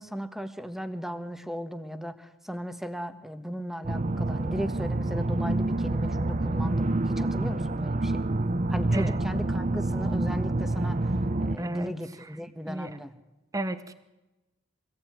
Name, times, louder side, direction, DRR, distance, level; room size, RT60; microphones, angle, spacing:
voice 1, 0.0-8.2 8.7-13.1, equal, ahead, 9 dB, 1.4 m, -36 dB
sound 1, 3.8-11.6, right 2 dB, 40° right, 0.8 m, -27 dB
voice 2, 11.6-11.9 12.2-12.3 12.6-13.0 13.5-13.9, right 1 dB, 15° right, 12 dB, 1.1 m, -33 dB
24.5 x 18.0 x 9.2 m, 1.0 s
head